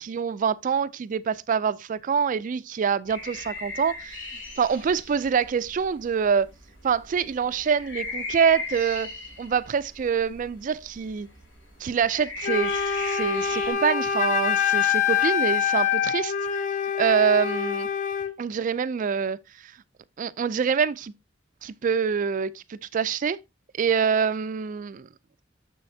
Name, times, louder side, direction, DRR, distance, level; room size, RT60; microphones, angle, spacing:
voice 1, 0.0-6.5 6.8-9.1 9.4-11.3 11.8-16.6 17.0-17.9 18.4-19.7 20.2-21.1 21.6-23.4 23.8-25.1, right 6 dB, 40° right, 0.3 m, -25 dB
sound 1, 3.1-13.7, left 3 dB, 75° left, 4.5 m, -39 dB
Wind instrument woodwind instrument, 12.4-18.3, left 8 dB, 40° left, 0.6 m, -25 dB
6.9 x 6.5 x 2.7 m
head